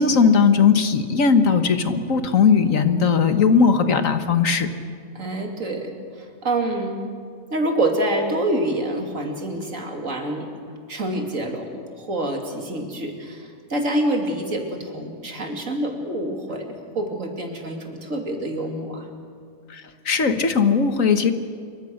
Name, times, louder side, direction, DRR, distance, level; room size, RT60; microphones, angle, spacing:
voice 1, 0.0-4.7 19.7-21.3, left 5 dB, 85° left, 8 dB, 1.8 m, -18 dB
voice 2, 5.1-7.0 7.5-10.5 10.9-19.1, right 1 dB, 80° right, 3 dB, 3.2 m, -27 dB
27.0 x 24.0 x 6.6 m, 2.2 s
omnidirectional pair, 1.3 m